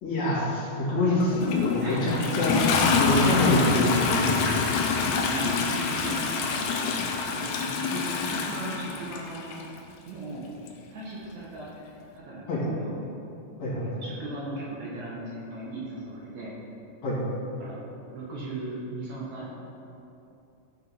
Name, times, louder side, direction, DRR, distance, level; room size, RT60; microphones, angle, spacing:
voice 1, 0.0-2.5 3.0-4.7 12.5-12.6 13.6-14.0 17.0-17.2, left 1 dB, 55° left, -9 dB, 3.0 m, -26 dB
Toilet flush, 1.2-9.6 10.7-10.8, left 5 dB, 75° left, 1.9 m, -26 dB
voice 2, 1.8-2.5 5.2-6.8 7.2-7.4 7.8-9.6 10.1-10.5 10.9-11.7 12.1-13.0 14.0-16.6 17.5-17.8 18.1-19.6, right 2 dB, 65° right, -6 dB, 2.3 m, -37 dB
12.5 x 4.2 x 5.5 m, 2.8 s
omnidirectional pair, 4.2 m